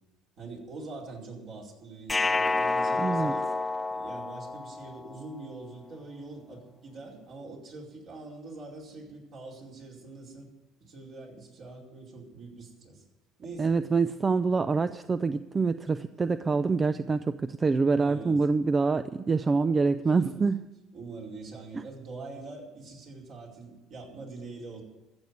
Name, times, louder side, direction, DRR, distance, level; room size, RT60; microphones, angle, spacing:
voice 1, 0.4-3.5 3.9-10.5 10.8-13.0 13.4-13.8 15.8-15.9 18.0-18.4 20.1-20.5 20.9-24.8, right 3 dB, 60° right, -3 dB, 4.9 m, -44 dB
sound 1, 2.1-5.2, left 3 dB, 20° left, 0.9 m, -29 dB
voice 2, 3.0-3.3 13.6-20.6 21.7-21.8, right 4 dB, 30° right, 12 dB, 0.5 m, -26 dB
15.0 x 7.2 x 9.7 m, 1.0 s
hypercardioid pair, 70°, 0 cm